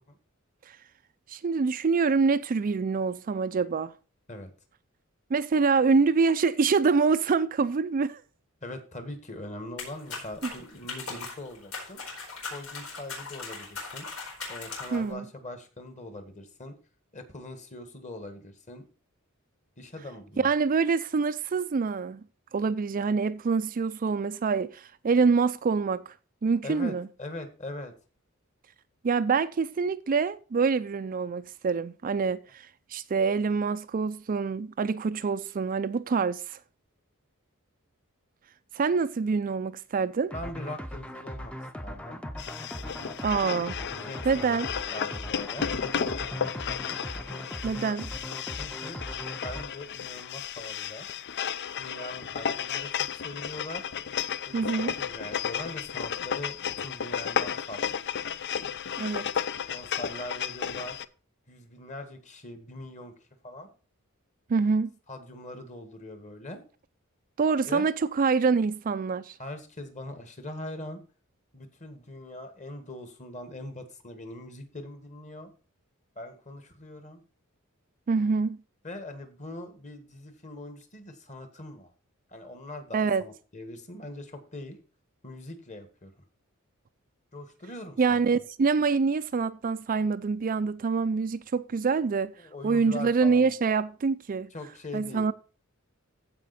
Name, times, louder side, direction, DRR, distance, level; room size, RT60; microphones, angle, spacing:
voice 1, 1.3-3.9 5.3-8.2 14.9-15.2 20.4-22.2 22.5-26.1 26.4-27.1 29.0-36.6 38.7-40.3 43.2-43.8 44.2-44.7 47.6-48.1 54.5-54.9 59.0-59.3 64.5-64.9 67.4-69.4 78.1-78.6 82.9-83.2 88.0-92.3 92.6-94.5 94.9-95.3, right 5 dB, 40° right, 0.4 m, -26 dB
voice 2, 8.6-12.0 12.5-14.1 14.5-16.8 17.1-18.8 19.8-20.5 26.6-27.9 40.3-41.5 41.8-42.2 43.9-45.7 48.6-51.1 51.8-53.9 54.5-58.1 59.7-61.0 61.5-63.1 63.4-63.7 65.1-66.6 67.6-67.9 69.4-71.0 71.5-75.5 76.2-77.2 78.8-81.9 82.3-84.8 85.2-86.1 87.3-88.2 92.4-93.5 94.5-95.3, left 1 dB, 35° left, 1.7 m, -41 dB
sound 1, 9.8-15.1, left 4 dB, 80° left, 4.6 m, -39 dB
sound 2, 40.3-49.6, equal, 5° left, 0.7 m, -39 dB
sound 3, 42.4-61.0, left 8 dB, 55° left, 0.5 m, -33 dB
15.0 x 5.1 x 4.2 m
head